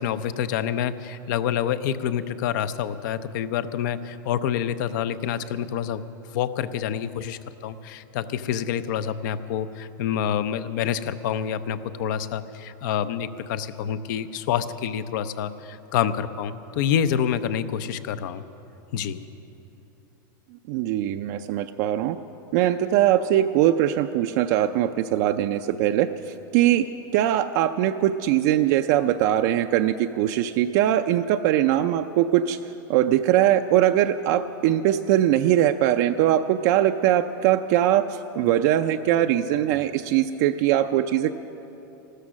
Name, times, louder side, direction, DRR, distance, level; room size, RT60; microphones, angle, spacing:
voice 1, 0.0-6.0 6.3-18.4 18.9-19.2, left 9 dB, 65° left, 13 dB, 0.7 m, -27 dB
voice 2, 20.7-22.2 22.5-26.1 26.5-26.9 27.1-32.6 32.9-41.4, right 12 dB, 55° right, 7 dB, 0.5 m, -21 dB
15.0 x 13.0 x 6.3 m, 3.0 s
supercardioid pair, 130°, 11 cm